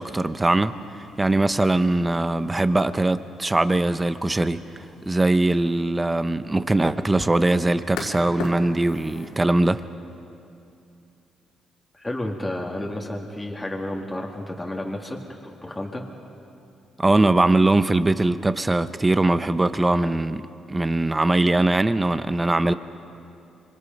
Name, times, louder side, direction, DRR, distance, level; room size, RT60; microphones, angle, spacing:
voice 1, 0.0-4.6 5.1-9.8 17.0-20.4 20.7-22.7, right 2 dB, 15° right, 0.9 m, -21 dB
sound 1, 0.7-9.4, left 3 dB, 90° left, 4.4 m, -41 dB
voice 2, 11.9-16.0, left 1 dB, 10° left, 2.3 m, -31 dB
25.0 x 25.0 x 5.4 m
cardioid pair, 90°, 0 cm